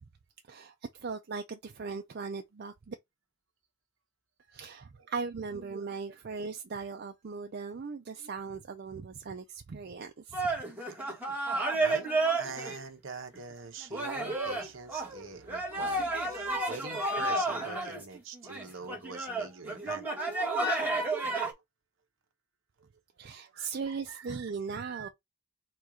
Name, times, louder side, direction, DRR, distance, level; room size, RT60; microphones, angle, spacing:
voice 1, 0.5-2.9 4.5-10.5 23.2-25.1, right 5 dB, 50° right, 0.4 m, -39 dB
voice 2, 5.5-5.9 8.2-8.3 10.9-11.4 11.7-12.1 12.4-20.1 22.8-22.9 23.5-25.1, right 4 dB, 65° right, 0.9 m, -44 dB
sound 1, 10.3-12.8 13.3-13.4 13.9-21.5, right 2 dB, 10° right, 1.2 m, -31 dB
4.5 x 2.4 x 4.8 m
head